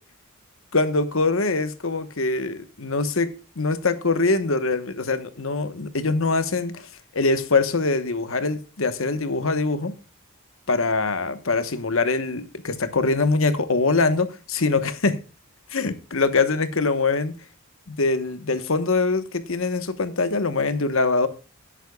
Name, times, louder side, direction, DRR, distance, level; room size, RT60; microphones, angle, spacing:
voice 1, 0.7-6.9 7.1-9.9 10.7-15.2 15.7-17.4 17.9-21.3, left 3 dB, 70° left, 1.2 m, -23 dB
17.5 x 9.0 x 2.3 m
head